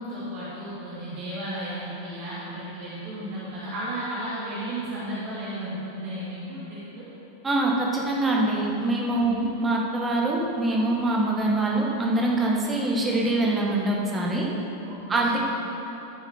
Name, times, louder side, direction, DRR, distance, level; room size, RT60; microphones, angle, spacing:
voice 1, 0.0-7.0 9.2-9.5 14.8-15.4, right 1 dB, 45° right, -9 dB, 2.7 m, -34 dB
voice 2, 7.4-14.5 15.1-15.4, right 2 dB, 15° right, -3 dB, 1.9 m, -24 dB
15.5 x 7.1 x 3.9 m, 3.0 s
figure-of-eight pair, 90°, 0 cm